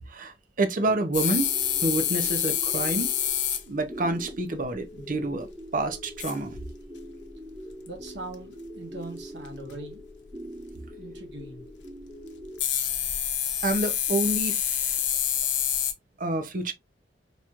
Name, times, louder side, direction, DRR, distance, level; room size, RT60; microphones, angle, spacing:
voice 1, 0.1-1.5 1.8-3.1 3.7-5.5 5.7-6.6 13.6-15.0 16.2-16.7, right 2 dB, 50° right, 0.7 m, -28 dB
sound 1, 0.7-12.6, equal, 25° right, 1.5 m, -43 dB
sound 2, 1.1-3.6 5.8-5.9 6.2-6.7 7.9-8.0 9.4-9.5 12.6-15.9, left 10 dB, 75° left, 0.8 m, -27 dB
voice 2, 7.9-10.0 11.0-11.6, right 2 dB, 70° right, 1.4 m, -41 dB
4.4 x 3.0 x 2.4 m
head